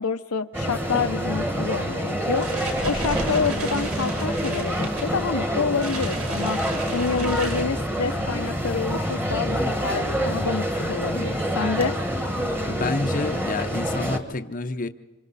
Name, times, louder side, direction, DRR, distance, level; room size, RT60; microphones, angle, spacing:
voice 1, 0.0-2.5 2.8-6.6 6.9-11.9, left 5 dB, 80° left, 8 dB, 0.7 m, -27 dB
sound 1, 0.5-14.2, equal, 10° right, 1.3 m, -27 dB
sound 2, 2.2-8.1, right 2 dB, 80° right, 5.6 m, -35 dB
voice 2, 12.7-14.9, left 3 dB, 40° left, 8 dB, 0.7 m, -29 dB
27.5 x 25.5 x 4.1 m, 1.3 s
head